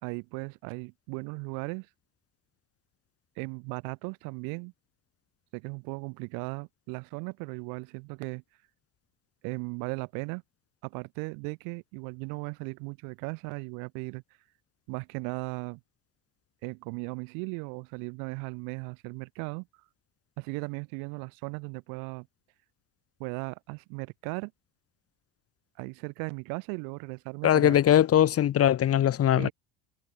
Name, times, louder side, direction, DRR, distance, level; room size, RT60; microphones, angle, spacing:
voice 1, 0.0-1.9 3.4-4.7 5.5-8.4 9.4-10.4 10.8-14.2 14.9-15.8 16.6-19.7 20.4-22.3 23.2-24.5 25.8-27.7 29.3-29.5, right 34 dB, 65° right, 5.1 m, -37 dB
voice 2, 27.4-29.5, left 11 dB, 40° left, 1.5 m, -21 dB
figure-of-eight pair, 65°, 37 cm